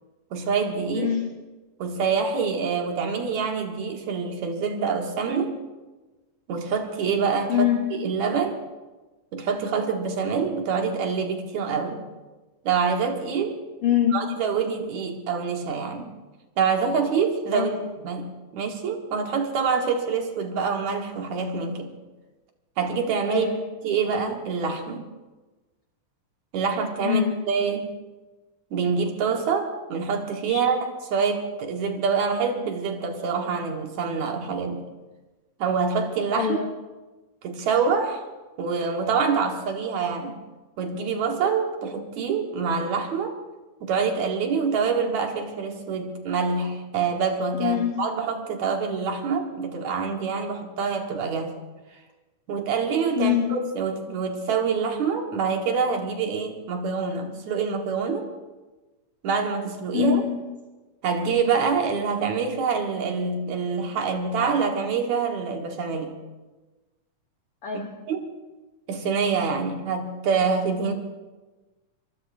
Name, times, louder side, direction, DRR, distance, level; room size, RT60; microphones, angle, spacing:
voice 1, 0.3-1.1 1.8-5.6 6.5-8.6 9.3-12.0 12.6-13.6 14.1-16.1 16.6-17.7 18.0-21.9 22.8-23.5 23.8-25.1 26.5-27.9 28.7-34.8 35.6-36.6 37.4-38.3 38.6-40.3 40.8-43.4 43.8-51.6 52.5-58.3 59.2-60.2 61.0-66.1 68.1-68.3 68.9-70.9, right 5 dB, 65° right, 3 dB, 2.6 m, -26 dB
voice 2, 0.9-1.3 7.5-8.0 13.8-14.3 17.5-17.8 23.3-23.6 27.0-27.4 30.5-30.6 36.3-36.7 47.6-48.1 53.2-53.7 59.9-60.5 67.6-67.9, left 10 dB, 65° left, 2 dB, 1.5 m, -24 dB
24.0 x 23.0 x 2.6 m, 1.2 s
omnidirectional pair, 3.7 m